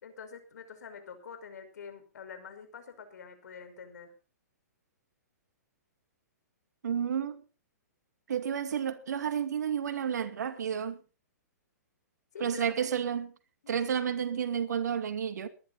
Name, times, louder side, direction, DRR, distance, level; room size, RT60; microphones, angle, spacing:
voice 1, 0.0-4.1 12.3-12.9, left 6 dB, 75° left, 5.3 m, -46 dB
voice 2, 6.8-7.4 8.3-11.0 12.4-13.3 13.7-15.5, right 8 dB, 75° right, 2.3 m, -31 dB
21.0 x 11.5 x 4.1 m
hypercardioid pair, 135°, 9 cm